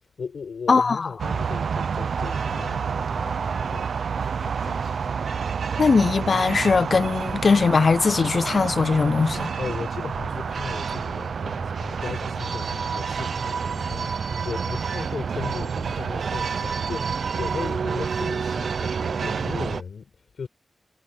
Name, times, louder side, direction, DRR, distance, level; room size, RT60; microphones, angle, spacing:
voice 1, 0.2-3.9 4.2-5.1 9.6-20.5, left 5 dB, 80° left, 6.3 m, -37 dB
voice 2, 0.7-1.1 5.8-9.5, left 4 dB, 50° left, 0.5 m, -20 dB
sound 1, 1.2-19.8, right 6 dB, 85° right, 0.7 m, -28 dB
wide cardioid pair, 150°, 0 cm